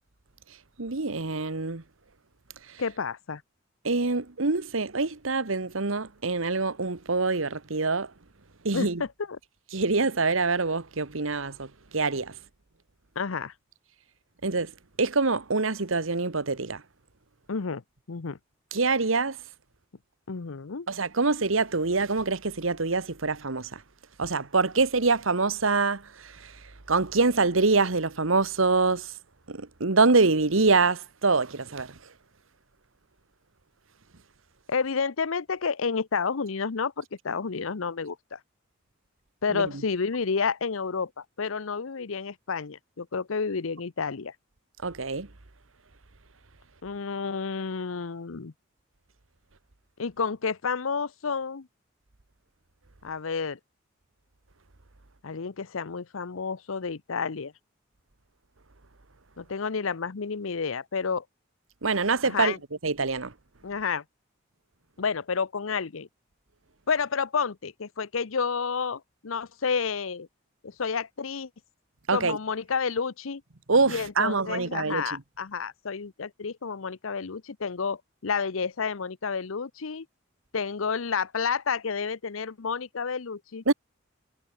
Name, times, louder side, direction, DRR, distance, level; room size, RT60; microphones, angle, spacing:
voice 1, 0.8-1.8 3.8-8.1 8.6-9.0 9.7-12.3 14.4-14.7 15.0-16.8 18.7-19.4 20.9-23.8 24.2-26.5 26.9-29.1 29.5-32.0 39.5-39.7 44.8-45.3 61.8-62.5 62.8-63.3 72.1-72.4 73.7-75.2 83.7-83.8, right 3 dB, 80° right, 1.5 m, -25 dB
voice 2, 2.8-3.4 8.7-9.1 13.2-13.5 17.5-17.8 18.1-18.4 20.3-20.9 34.7-38.4 39.4-44.3 46.8-48.5 50.0-51.7 53.0-53.6 55.2-57.5 59.4-61.2 62.2-62.6 63.6-64.0 65.0-66.1 66.9-70.3 70.6-71.5 72.1-73.4 73.9-80.1 80.5-83.6, left 5 dB, 85° left, 0.8 m, -30 dB
head